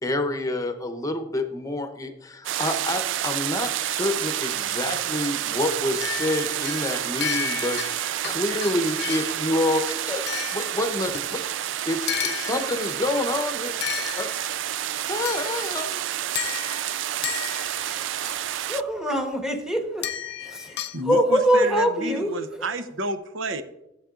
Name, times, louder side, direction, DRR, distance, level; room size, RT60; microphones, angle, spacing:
voice 1, 0.0-10.2 10.5-13.7 14.1-14.3 15.0-16.0, left 1 dB, 20° left, 6 dB, 0.8 m, -28 dB
sound 1, 2.4-18.8, right 12 dB, 70° right, 0.3 m, -29 dB
sound 2, 6.0-9.4 10.3-11.4 12.1-13.0 13.8-14.7 15.3-15.9 16.4-18.0 20.0-21.0, left 10 dB, 60° left, 0.6 m, -33 dB
voice 2, 17.9-18.4 18.7-20.1 20.4-22.3, equal, 5° right, 2 dB, 1.2 m, -24 dB
voice 3, 20.9-23.6, right 2 dB, 90° right, 10 dB, 0.8 m, -30 dB
15.0 x 8.3 x 2.5 m, 0.89 s
head